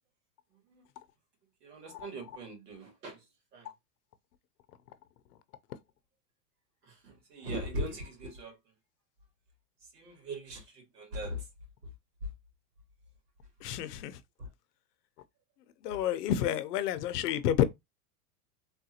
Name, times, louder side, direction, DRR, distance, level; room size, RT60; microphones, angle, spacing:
voice 1, 1.6-3.2 3.5-3.7 6.9-8.6 9.9-11.4 14.4-14.5, equal, 80° right, 2.0 m, -40 dB
voice 2, 13.6-14.1 15.8-17.6, left 10 dB, 80° left, 0.6 m, -29 dB
3.5 x 2.4 x 2.8 m
supercardioid pair, 155°, 47 cm